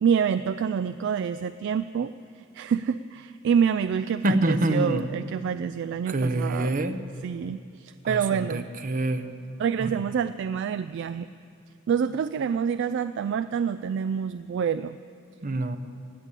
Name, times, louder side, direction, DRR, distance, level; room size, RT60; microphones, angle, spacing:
voice 1, 0.0-6.8 7.2-8.7 9.6-11.3 11.9-15.0, right 7 dB, 60° right, 12 dB, 0.3 m, -27 dB
voice 2, 4.2-5.1 6.1-7.0 8.0-9.3 9.8-10.2 15.4-15.8, right 1 dB, 40° right, 10 dB, 0.7 m, -26 dB
17.0 x 8.8 x 8.3 m, 2.5 s
head